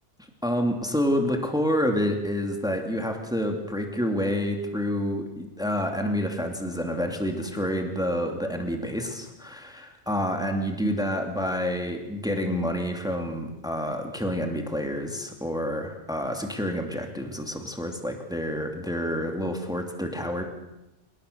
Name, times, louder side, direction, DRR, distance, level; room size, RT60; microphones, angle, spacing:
voice 1, 0.4-20.4, equal, 5° right, 4 dB, 2.5 m, -28 dB
28.5 x 18.5 x 6.8 m, 0.92 s
omnidirectional pair, 1.2 m